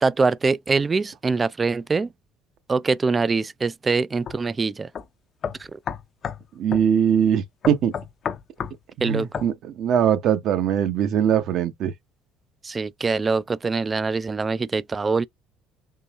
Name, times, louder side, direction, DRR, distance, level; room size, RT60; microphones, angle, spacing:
voice 1, 0.0-2.1 2.7-4.9 5.6-5.8 9.0-9.3 12.6-15.3, right 4 dB, 25° right, 0.3 m, -23 dB
sound 1, 4.3-4.4 5.0-5.1 5.4-6.4 6.7-6.9 7.6-8.8 9.3-9.5, left 7 dB, 45° left, 0.6 m, -30 dB
voice 2, 6.6-7.9 9.0-11.9, right 9 dB, 60° right, 0.8 m, -21 dB
3.8 x 2.8 x 2.9 m
hypercardioid pair, 65°, 0 cm